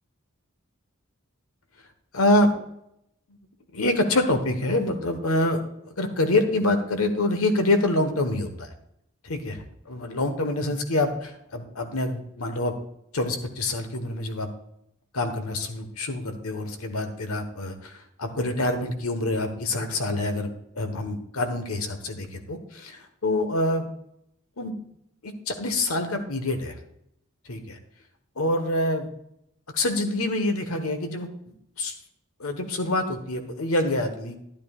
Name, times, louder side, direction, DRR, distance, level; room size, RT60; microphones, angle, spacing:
voice 1, 2.1-2.5 3.7-5.6 6.0-8.7 9.2-12.7 13.1-14.5 15.1-23.9 24.6-24.7 25.2-26.7 27.5-27.8 28.4-29.1 29.7-31.3 31.8-32.0 32.4-34.4, left 2 dB, 80° left, 7 dB, 1.3 m, -26 dB
12.0 x 10.5 x 2.4 m, 0.77 s
head